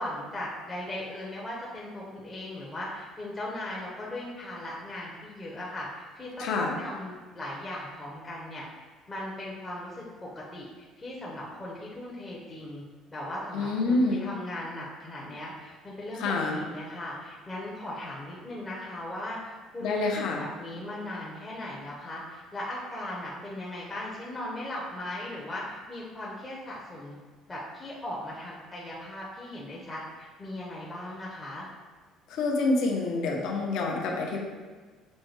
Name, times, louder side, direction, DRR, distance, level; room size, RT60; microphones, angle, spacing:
voice 1, 0.0-8.6 9.1-12.8 13.1-16.2 16.5-27.2 27.5-31.7, left 1 dB, 15° left, -6 dB, 0.6 m, -38 dB
voice 2, 6.4-6.7 13.5-14.2 16.2-16.6 19.8-20.4 32.3-34.4, left 3 dB, 65° left, 0 dB, 0.7 m, -27 dB
6.2 x 2.2 x 3.1 m, 1.4 s
cardioid pair, 150°, 0 cm